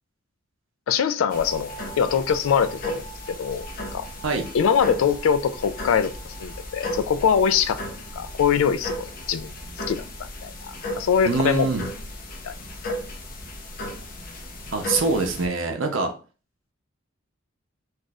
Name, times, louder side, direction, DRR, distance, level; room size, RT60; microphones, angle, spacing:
voice 1, 0.9-3.0 3.4-3.6 3.9-4.1 4.5-7.8 8.1-9.5 9.9-11.7 12.4-12.5, left 7 dB, 90° left, 0.3 m, -23 dB
sound 1, 1.3-15.5, left 1 dB, 45° left, 0.6 m, -35 dB
voice 2, 11.2-11.9 14.7-16.1, right 3 dB, 70° right, 0.6 m, -24 dB
2.5 x 2.4 x 4.0 m
head